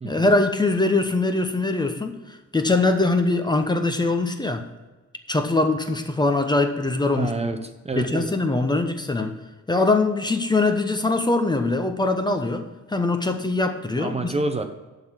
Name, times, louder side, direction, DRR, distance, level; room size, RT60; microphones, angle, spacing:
voice 1, 0.0-4.7 5.3-7.4 8.0-9.4 9.7-14.3, left 2 dB, 15° left, 6 dB, 0.9 m, -22 dB
voice 2, 7.2-8.3 14.0-14.6, right 3 dB, 20° right, 6 dB, 0.8 m, -28 dB
11.5 x 4.0 x 6.4 m, 1.2 s
cardioid pair, 90°, 30 cm